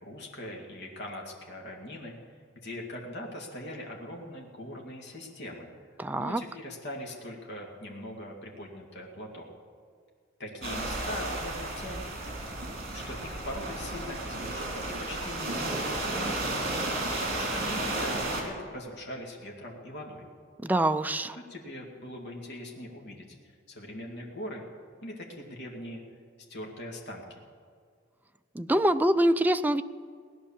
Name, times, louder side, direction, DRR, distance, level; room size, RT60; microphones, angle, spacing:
voice 1, 0.0-2.1 2.6-5.7 6.2-9.5 10.4-12.0 12.9-16.7 17.2-20.3 21.3-24.6 25.0-26.0 26.5-27.4, left 1 dB, 55° left, 0 dB, 2.3 m, -41 dB
voice 2, 6.0-6.4 20.6-21.4 28.5-29.8, right 1 dB, 10° right, 9 dB, 0.4 m, -25 dB
sound 1, 10.6-18.4, right 2 dB, 45° right, 3.2 m, -33 dB
17.5 x 11.0 x 7.3 m, 2.1 s
head